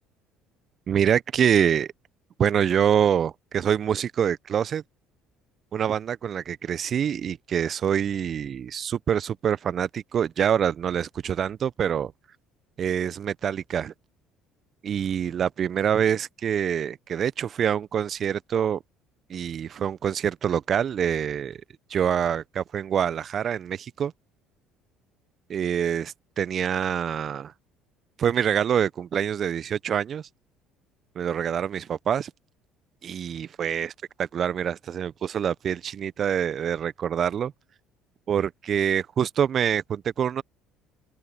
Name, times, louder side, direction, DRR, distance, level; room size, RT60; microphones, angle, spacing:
voice 1, 0.9-1.9 2.4-4.8 5.7-12.1 12.8-13.9 14.8-18.8 19.3-21.6 21.9-24.1 25.5-27.5 28.2-30.3 31.1-32.3 33.0-33.9 34.2-37.5 38.3-40.4, right 8 dB, 45° right, 1.1 m, -25 dB
hypercardioid pair, 60°, 0 cm